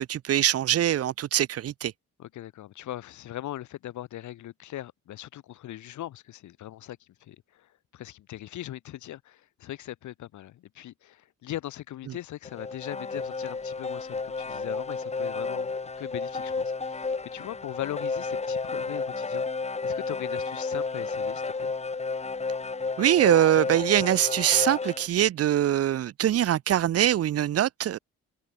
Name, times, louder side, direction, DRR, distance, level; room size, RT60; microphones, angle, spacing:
voice 1, 0.0-1.9 23.0-28.0, right 11 dB, 50° right, 0.7 m, -23 dB
voice 2, 2.2-19.4 19.8-21.7, left 13 dB, 75° left, 1.6 m, -40 dB
sound 1, 12.4-25.1, left 4 dB, 20° left, 1.4 m, -32 dB
cardioid pair, 90°, 30 cm